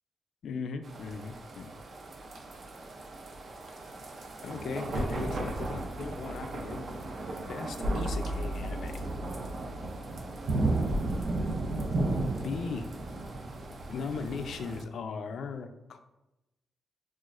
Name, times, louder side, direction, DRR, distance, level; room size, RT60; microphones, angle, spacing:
voice 1, 0.4-1.7 4.4-6.8 7.5-9.0 12.4-12.9 13.7-16.0, left 5 dB, 60° left, 8 dB, 0.3 m, -38 dB
sound 1, 0.8-14.8, right 2 dB, 40° right, 0.4 m, -35 dB
sound 2, 2.3-2.6 4.9-12.6, equal, 85° right, 0.9 m, -38 dB
5.9 x 2.4 x 2.4 m, 0.94 s
wide cardioid pair, 165°, 0 cm